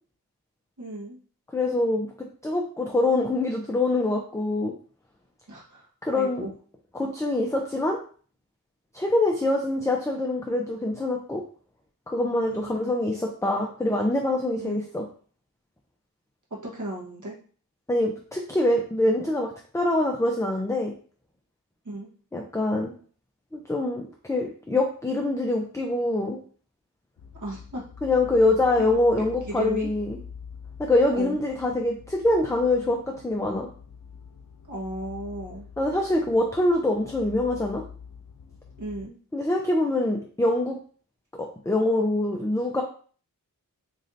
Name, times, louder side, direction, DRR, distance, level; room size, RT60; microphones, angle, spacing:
voice 1, 0.8-1.2 5.5-6.5 12.5-12.8 14.6-15.1 16.5-17.4 21.8-22.1 27.4-27.8 28.8-29.0 29.5-29.9 31.1-31.4 34.7-35.7 38.8-39.2, right 1 dB, 60° right, -4 dB, 1.4 m, -35 dB
voice 2, 1.5-2.1 2.4-4.7 6.0-6.5 6.9-8.0 8.9-11.4 12.1-15.0 17.9-20.9 22.3-22.9 23.5-26.4 28.0-30.2 30.8-33.7 35.8-37.8 39.3-40.8 41.4-42.8, left 2 dB, 10° left, 1 dB, 0.5 m, -24 dB
sound 1, 27.2-39.1, left 6 dB, 70° left, 0.5 m, -45 dB
3.1 x 2.7 x 3.9 m, 0.43 s
wide cardioid pair, 50°, 34 cm